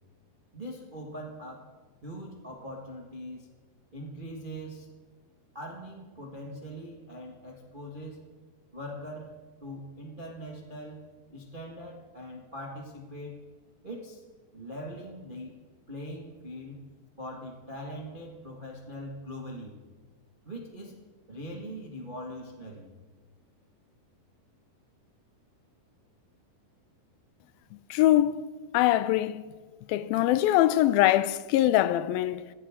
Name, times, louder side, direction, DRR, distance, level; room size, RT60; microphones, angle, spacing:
voice 1, 0.5-1.7 2.0-3.5 3.9-4.9 5.5-8.2 8.7-9.3 9.6-13.5 13.8-14.2 14.5-15.6 15.9-16.8 17.2-19.8 20.4-22.9, equal, 40° right, 0.7 m, -41 dB
voice 2, 27.9-28.4 28.7-29.5 29.9-32.5, left 14 dB, 85° left, 2.4 m, -23 dB
21.0 x 15.5 x 3.7 m
omnidirectional pair, 4.1 m